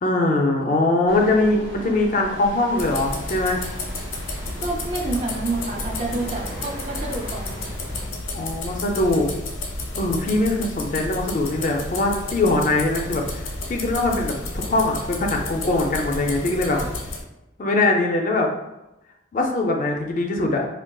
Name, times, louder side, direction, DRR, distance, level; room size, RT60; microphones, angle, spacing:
voice 1, 0.0-3.6 8.3-9.3 10.0-14.4 14.6-16.8 17.6-18.5 19.3-20.7, left 2 dB, 40° left, 2 dB, 0.3 m, -22 dB
sound 1, 1.1-8.1, right 1 dB, 65° right, 0.7 m, -38 dB
sound 2, 2.8-17.2, left 2 dB, 90° left, 0.6 m, -32 dB
voice 2, 4.6-7.5 16.7-16.8, right 2 dB, 30° right, -1 dB, 0.4 m, -28 dB
3.7 x 2.2 x 2.2 m, 0.94 s
head